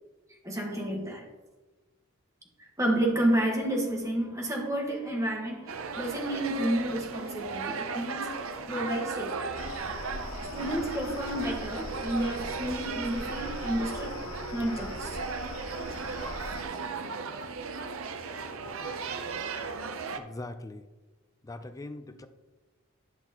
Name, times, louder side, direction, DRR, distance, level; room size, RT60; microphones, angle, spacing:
voice 1, 0.4-1.3 2.6-8.3 8.7-9.5 10.5-14.2 14.5-15.2, right 1 dB, 15° right, 0 dB, 1.4 m, -30 dB
sound 1, 5.7-20.2, right 4 dB, 75° right, 0.6 m, -36 dB
sound 2, 9.5-16.6, left 2 dB, 75° left, 0.8 m, -41 dB
voice 2, 20.2-20.8 21.4-22.3, left 2 dB, 15° left, 9 dB, 0.4 m, -41 dB
11.0 x 5.9 x 2.9 m, 1.2 s
head